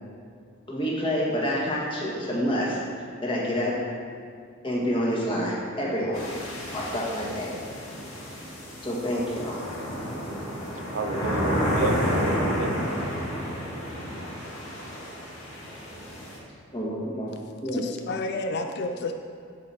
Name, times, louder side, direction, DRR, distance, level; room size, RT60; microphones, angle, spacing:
voice 1, 0.7-2.8 3.2-3.7 4.6-6.4 6.7-7.5 8.8-9.6 16.7-17.8, equal, 25° left, -4 dB, 1.6 m, -28 dB
sound 1, 6.1-16.4, equal, 75° left, 2.3 m, -31 dB
voice 2, 10.9-12.9, right 2 dB, 75° right, 5 dB, 0.7 m, -30 dB
voice 3, 17.7-19.1, left 2 dB, 50° left, 5 dB, 0.4 m, -30 dB
7.0 x 4.9 x 7.1 m, 2.2 s
head